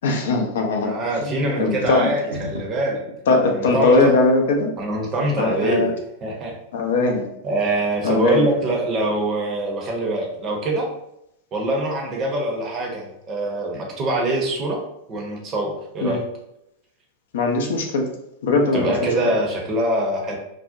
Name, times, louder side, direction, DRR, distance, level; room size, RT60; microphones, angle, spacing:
voice 1, 0.0-2.1 3.3-4.7 5.4-5.9 6.7-7.3 8.0-8.5 16.0-16.2 17.3-18.1 18.4-18.9, left 3 dB, 60° left, 2 dB, 0.4 m, -20 dB
voice 2, 0.8-3.0 3.4-4.1 4.8-5.9 6.2-6.6 7.4-10.9 11.5-14.8 15.1-16.2 18.7-20.4, right 1 dB, 30° right, 0 dB, 0.6 m, -24 dB
sound 1, 1.8-2.9, equal, 80° right, 0.4 m, -34 dB
2.5 x 2.1 x 2.5 m, 0.82 s
figure-of-eight pair, 90°, 0 cm